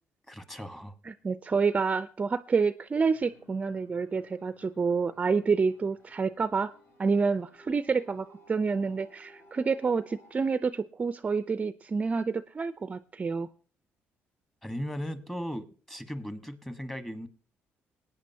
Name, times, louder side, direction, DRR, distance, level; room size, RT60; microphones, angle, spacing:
voice 1, 0.3-0.9 14.6-17.3, equal, 10° left, 11 dB, 1.3 m, -37 dB
voice 2, 1.0-6.7 7.0-13.5, right 5 dB, 30° right, 14 dB, 0.4 m, -28 dB
sound 1, 3.0-10.3, equal, 55° left, 2.6 m, -58 dB
20.0 x 9.0 x 2.7 m, 0.40 s
cardioid pair, 90°, 5 cm